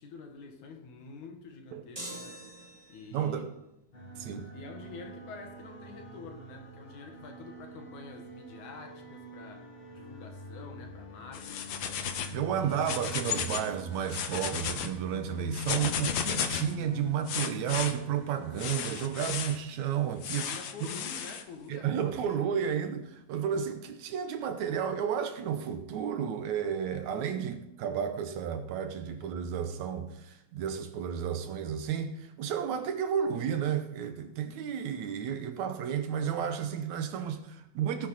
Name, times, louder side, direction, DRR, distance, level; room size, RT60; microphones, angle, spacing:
voice 1, 0.0-2.4 2.9-3.5 4.5-11.9 12.5-13.0 20.4-23.0, left 4 dB, 75° left, 2.9 m, -47 dB
sound 1, 2.0-3.3, right 1 dB, 10° right, 1.8 m, -43 dB
voice 2, 3.1-3.5 4.2-4.5 12.3-20.5 21.7-38.1, right 8 dB, 75° right, 2.2 m, -32 dB
sound 2, 3.9-19.2, left 2 dB, 40° left, 3.8 m, -45 dB
sound 3, 11.3-12.4 12.7-13.7 14.0-14.9 15.5-16.7 17.3-17.9 18.6-19.6 20.2-21.4, left 8 dB, 90° left, 1.0 m, -34 dB
17.0 x 10.0 x 4.2 m
omnidirectional pair, 3.5 m